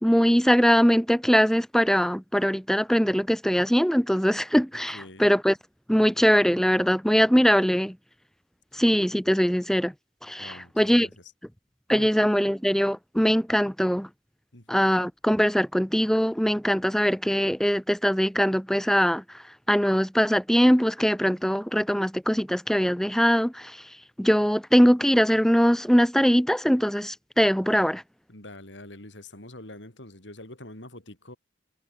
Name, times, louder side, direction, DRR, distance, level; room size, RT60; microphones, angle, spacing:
voice 1, 0.0-5.5 5.9-7.9 8.7-9.9 10.2-11.1 11.9-14.1 14.7-19.2 19.7-23.8 24.2-28.0, equal, 5° left, 1.8 m, -22 dB
voice 2, 4.9-5.3 10.4-11.3 11.9-12.1 14.5-14.9 21.7-21.8 28.3-31.4, left 1 dB, 80° left, 6.4 m, -45 dB
head